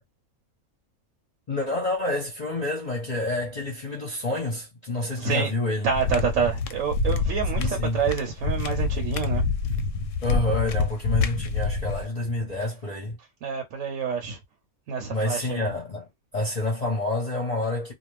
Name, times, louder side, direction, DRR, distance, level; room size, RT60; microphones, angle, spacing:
voice 1, 1.5-5.9 7.6-8.0 10.2-13.2 15.1-16.1 16.3-17.9, left 2 dB, 35° left, 0.7 m, -28 dB
voice 2, 5.2-5.5 5.8-9.4 12.4-12.5 13.4-14.4 14.9-15.6, right 6 dB, 70° right, 1.0 m, -27 dB
sound 1, 5.9-12.1, left 4 dB, 70° left, 0.9 m, -26 dB
2.5 x 2.2 x 3.1 m
omnidirectional pair, 1.5 m